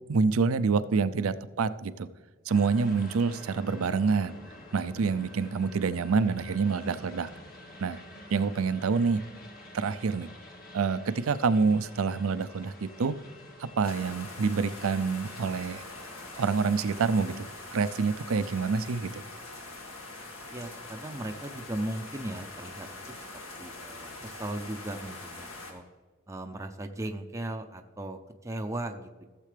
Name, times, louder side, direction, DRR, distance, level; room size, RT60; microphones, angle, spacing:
voice 1, 0.1-2.1 2.5-4.4 4.7-7.3 7.8-8.0 8.3-9.2 9.7-10.3 10.7-13.2 13.6-15.8 16.4-19.2, right 5 dB, 75° right, 14 dB, 0.5 m, -27 dB
sound 1, 2.5-17.3, left 1 dB, 45° left, 1.8 m, -49 dB
sound 2, 13.8-25.7, left 2 dB, 70° left, 2.0 m, -43 dB
voice 2, 20.5-22.9 23.6-25.8 26.3-29.2, right 1 dB, 15° right, 4 dB, 0.6 m, -37 dB
15.5 x 7.5 x 3.3 m, 1.3 s
head